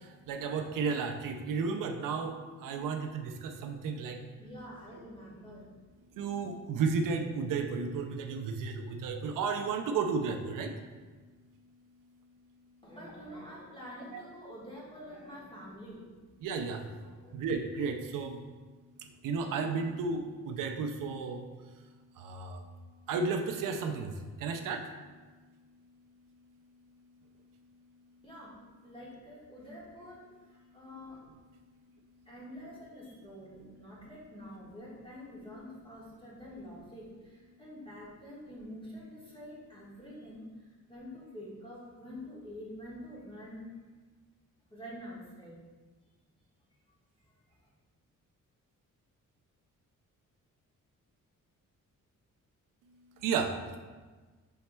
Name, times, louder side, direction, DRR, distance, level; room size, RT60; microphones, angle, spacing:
voice 1, 0.0-4.2 6.2-10.7 14.1-14.2 16.4-16.8 17.3-18.4 19.2-21.4 22.2-22.6 23.1-24.1 24.4-24.8 53.2-53.8, right 5 dB, 85° right, 4 dB, 0.5 m, -33 dB
voice 2, 4.4-5.7 12.8-16.0 16.8-17.4 28.2-28.5 28.8-31.2 32.2-43.7 44.7-45.6 47.2-47.3, equal, 15° left, -6 dB, 1.5 m, -47 dB
5.5 x 4.1 x 2.2 m, 1.4 s
cardioid pair, 105°, 32 cm